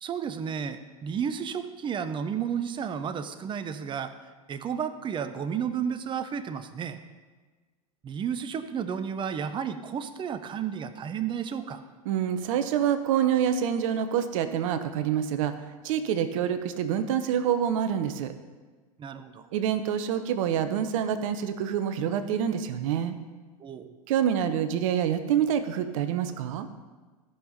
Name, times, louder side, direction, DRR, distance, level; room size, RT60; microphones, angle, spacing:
voice 1, 0.0-4.1 4.5-7.0 8.0-11.8 19.0-19.5 23.6-23.9, right 7 dB, 25° right, 10 dB, 0.8 m, -32 dB
voice 2, 12.1-15.5 15.8-18.3 19.5-23.1 24.1-26.7, right 9 dB, 60° right, 10 dB, 0.9 m, -26 dB
14.0 x 5.8 x 5.1 m, 1.3 s
hypercardioid pair, 95°, 19 cm